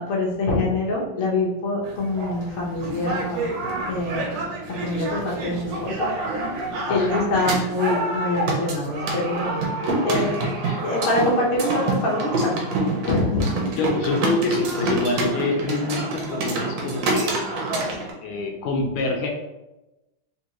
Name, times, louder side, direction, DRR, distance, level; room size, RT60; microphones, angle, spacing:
voice 1, 0.0-3.5 3.9-4.4 4.8-6.1 6.9-9.6 10.0-10.4 10.8-12.7 13.0-13.5 13.7-13.8, left 2 dB, 65° left, -2 dB, 0.8 m, -25 dB
sound 1, 1.8-18.1, right 2 dB, 70° right, 1.3 m, -27 dB
voice 2, 6.9-7.4 10.1-10.8 13.8-17.4 18.2-19.3, left 3 dB, 80° left, 2 dB, 1.4 m, -26 dB
3.6 x 2.7 x 2.9 m, 1.0 s
omnidirectional pair, 2.4 m